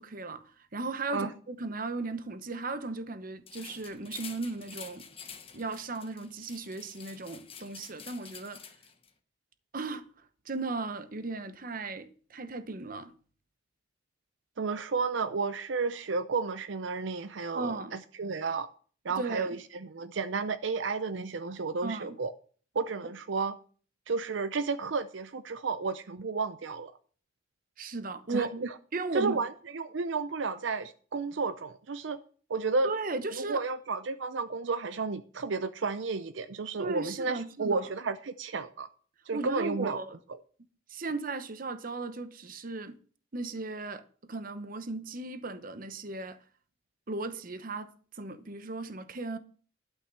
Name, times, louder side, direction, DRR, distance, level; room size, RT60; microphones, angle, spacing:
voice 1, 0.0-5.1 5.5-8.6 9.7-10.1 10.5-13.1 17.5-17.9 19.2-19.6 21.8-22.2 27.8-28.5 28.9-29.4 32.8-33.6 36.8-37.8 39.3-40.2 40.9-43.0 43.3-46.4 47.1-49.4, right 3 dB, 45° right, 0.9 m, -36 dB
sound 1, 3.5-9.1, left 7 dB, 30° left, 1.1 m, -48 dB
voice 2, 14.6-18.7 19.0-22.3 22.7-23.5 24.1-26.9 28.3-28.7 29.1-32.2 32.5-32.9 33.3-38.9 39.3-40.0 40.3-40.4, right 4 dB, 75° right, 0.6 m, -32 dB
12.0 x 5.7 x 7.4 m
head